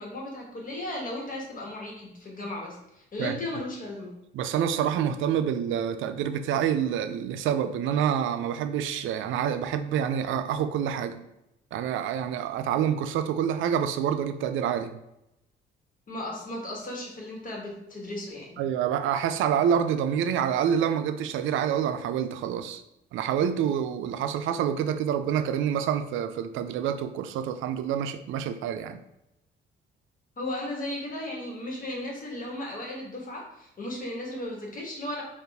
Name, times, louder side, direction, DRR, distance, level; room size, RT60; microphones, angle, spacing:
voice 1, 0.0-4.1 16.1-18.6 30.4-35.2, left 1 dB, 45° left, -1 dB, 1.4 m, -35 dB
voice 2, 4.3-11.2 11.7-15.0 18.6-22.8 23.1-29.0, right 9 dB, 80° right, 10 dB, 0.4 m, -27 dB
4.2 x 2.5 x 3.4 m, 0.86 s
cardioid pair, 90°, 20 cm